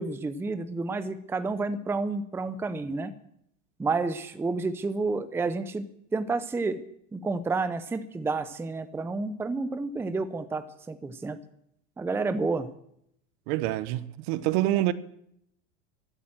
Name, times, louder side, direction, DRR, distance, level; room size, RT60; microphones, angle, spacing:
voice 1, 0.0-3.1 3.8-5.9 6.1-6.8 7.1-11.4 12.0-12.7, right 3 dB, 5° right, 0.6 m, -30 dB
voice 2, 13.5-14.9, right 15 dB, 55° right, 1.0 m, -26 dB
14.5 x 9.0 x 7.8 m
supercardioid pair, 130°, 37 cm